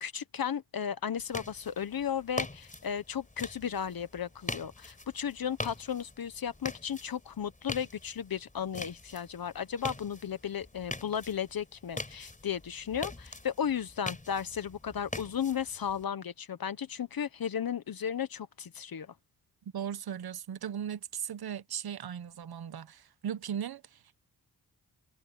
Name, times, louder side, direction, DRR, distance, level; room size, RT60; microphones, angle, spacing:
voice 1, 0.0-19.1, left 8 dB, 65° left, 1.2 m, -35 dB
sound 1, 1.2-16.0, left 2 dB, 20° left, 4.6 m, -43 dB
voice 2, 19.6-24.2, right 9 dB, 70° right, 1.0 m, -38 dB
cardioid pair, 80°, 39 cm